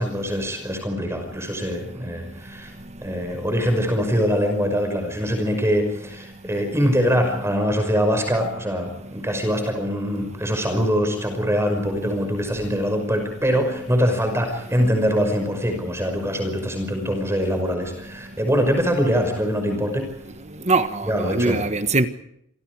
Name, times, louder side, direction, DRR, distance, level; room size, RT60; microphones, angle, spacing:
voice 1, 0.0-2.7 3.0-20.1 21.0-21.6, equal, 10° right, 5.7 m, -23 dB
voice 2, 20.4-22.1, right 3 dB, 30° right, 1.4 m, -23 dB
28.0 x 26.5 x 4.9 m
head